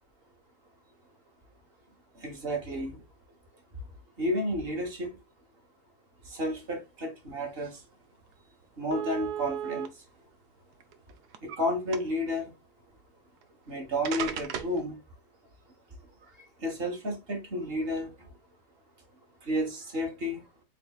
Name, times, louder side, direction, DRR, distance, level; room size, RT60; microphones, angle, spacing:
voice 1, 2.2-3.0 4.2-5.1 6.3-7.8 8.8-9.9 11.4-12.5 13.7-15.0 16.6-18.1 19.5-20.4, equal, 40° right, 1.4 m, -31 dB
sound 1, 7.8-7.9 8.2-8.4 8.9-9.9 10.7-11.6 11.9-12.3 13.4-13.5 14.0-14.8, right 9 dB, 85° right, 1.3 m, -35 dB
4.2 x 4.1 x 2.2 m
omnidirectional pair, 1.7 m